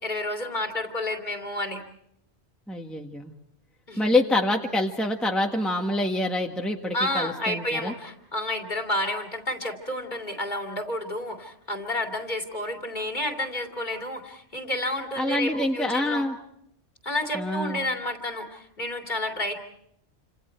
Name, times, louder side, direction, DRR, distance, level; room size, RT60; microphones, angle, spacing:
voice 1, 0.0-1.8 3.9-4.2 6.9-16.2 17.0-19.6, left 1 dB, 45° left, 2 dB, 2.8 m, -30 dB
voice 2, 2.7-3.3 4.0-7.9 15.2-16.4 17.3-17.8, left 1 dB, ahead, 2 dB, 1.5 m, -26 dB
29.0 x 27.0 x 4.6 m, 0.75 s
omnidirectional pair, 1.1 m